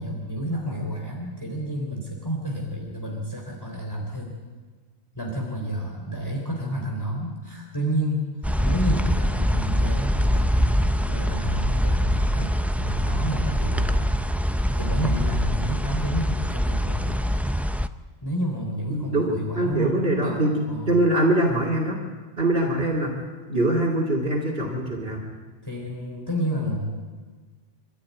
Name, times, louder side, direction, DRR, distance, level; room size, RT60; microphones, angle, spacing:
voice 1, 0.0-4.4 5.2-8.3 8.6-14.1 14.7-17.3 18.2-20.9 25.6-26.9, equal, 20° left, -1 dB, 3.4 m, -30 dB
sound 1, 8.4-17.9, equal, ahead, 0.3 m, -24 dB
voice 2, 18.9-22.0 22.4-23.2 23.5-25.2, right 1 dB, 60° right, -2 dB, 2.9 m, -23 dB
26.0 x 13.0 x 9.4 m, 1.4 s
omnidirectional pair, 1.2 m